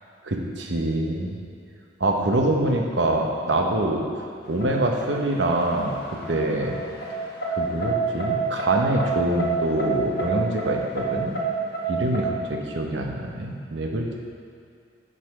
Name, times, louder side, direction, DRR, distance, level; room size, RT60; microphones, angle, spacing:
voice 1, 0.2-1.4 2.0-4.0 4.5-6.8 7.5-11.3 11.9-14.2, right 1 dB, 70° right, 1 dB, 0.9 m, -25 dB
sound 1, 4.6-12.3, right 4 dB, 55° left, 1.1 m, -28 dB
9.4 x 4.0 x 6.0 m, 2.4 s
head